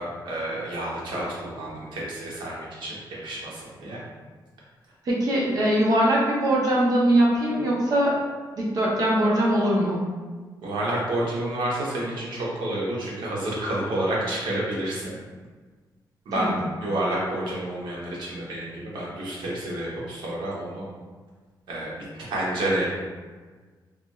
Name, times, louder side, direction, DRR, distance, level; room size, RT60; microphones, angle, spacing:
voice 1, 0.0-4.0 10.6-15.2 16.2-20.9 21.7-21.9 22.2-22.9, right 1 dB, 80° right, -5 dB, 0.9 m, -29 dB
voice 2, 5.0-8.2 8.6-10.0 16.4-16.6, right 1 dB, 50° right, -4 dB, 0.6 m, -21 dB
2.4 x 2.3 x 3.0 m, 1.4 s
wide cardioid pair, 180°, 8 cm